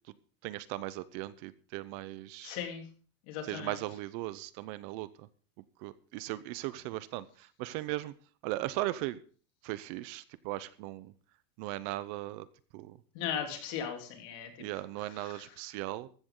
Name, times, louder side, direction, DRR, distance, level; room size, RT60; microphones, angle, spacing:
voice 1, 0.4-2.6 3.4-5.3 5.8-8.1 8.4-9.2 9.6-11.1 11.6-12.5 12.7-13.0 14.6-16.1, right 17 dB, 45° right, 16 dB, 0.8 m, -38 dB
voice 2, 2.4-2.9 3.3-3.8 13.1-14.7 15.1-15.5, left 8 dB, 55° left, 4 dB, 3.5 m, -38 dB
14.5 x 14.0 x 3.9 m, 0.42 s
supercardioid pair, 165°, 15 cm